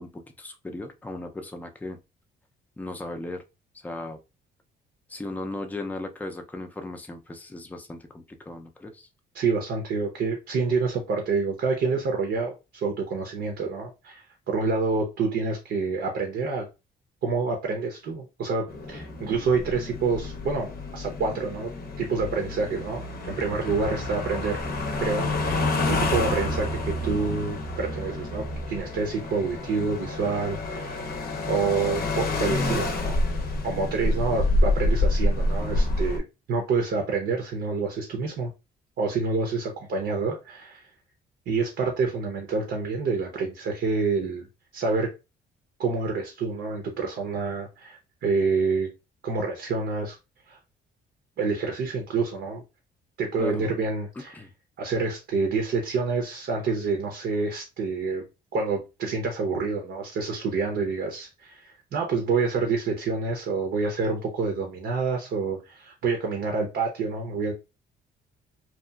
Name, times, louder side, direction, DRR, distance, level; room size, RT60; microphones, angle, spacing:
voice 1, 0.0-2.0 2.8-3.4 3.8-4.2 5.1-9.1 53.4-53.7 54.3-54.5, left 2 dB, 10° left, 0.4 m, -36 dB
voice 2, 9.3-16.7 17.2-21.7 22.0-24.6 25.0-31.1 31.5-33.2 33.6-38.5 39.0-40.8 41.5-44.5 44.7-45.1 45.8-48.9 49.2-50.2 50.5-50.6 51.4-52.6 53.2-54.4 54.8-58.2 58.5-67.5, right 4 dB, 65° right, 0.7 m, -27 dB
sound 1, 18.7-36.2, left 2 dB, 50° left, 0.6 m, -28 dB
2.8 x 2.4 x 2.3 m
cardioid pair, 90°, 20 cm